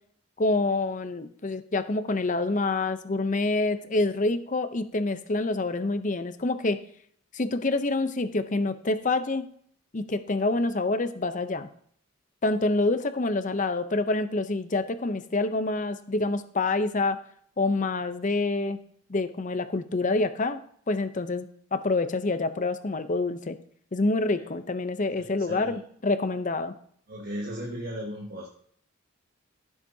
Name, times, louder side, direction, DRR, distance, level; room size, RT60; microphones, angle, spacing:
voice 1, 0.4-6.8 7.3-9.5 9.9-11.7 12.4-17.2 17.6-18.8 19.1-20.6 20.9-23.6 23.9-26.7, left 2 dB, 35° left, 11 dB, 0.6 m, -27 dB
voice 2, 25.1-25.7 27.1-28.5, equal, 45° right, -1 dB, 1.6 m, -36 dB
15.0 x 7.2 x 2.8 m, 0.62 s
head